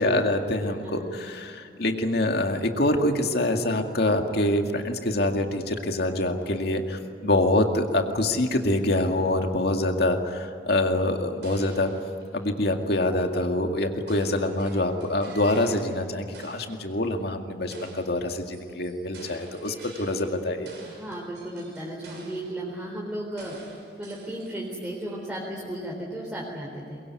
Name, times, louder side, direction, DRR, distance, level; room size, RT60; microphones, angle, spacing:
voice 1, 0.0-11.9 12.3-20.7, left 1 dB, 65° left, 4 dB, 2.1 m, -25 dB
voice 2, 0.7-1.2 20.8-23.6 24.0-27.0, right 1 dB, 5° right, -4 dB, 4.0 m, -35 dB
sound 1, 11.4-12.8 14.1-16.1 16.3-16.9 17.7-20.4 20.6-22.6 23.4-24.8, right 3 dB, 85° right, 6.6 m, -48 dB
23.0 x 22.0 x 9.5 m, 2.4 s
head